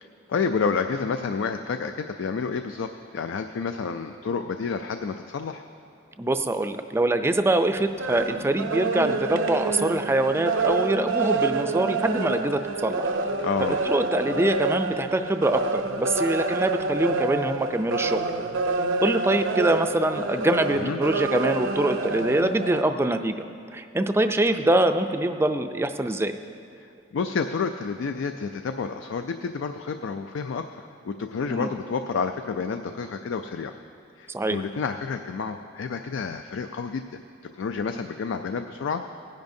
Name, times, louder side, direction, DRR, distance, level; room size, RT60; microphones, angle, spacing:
voice 1, 0.3-5.6 13.4-13.8 20.7-21.0 26.8-26.9 27.1-30.7 31.0-33.7 34.2-37.2 37.6-39.0, left 5 dB, 75° left, 7 dB, 0.4 m, -29 dB
voice 2, 6.2-13.1 13.6-18.2 19.0-23.4 23.7-26.4 31.5-31.7 34.3-34.6, right 1 dB, 15° right, 8 dB, 0.3 m, -24 dB
sound 1, 7.8-22.8, right 3 dB, 85° right, 0.6 m, -28 dB
18.5 x 10.5 x 2.7 m, 2.5 s
head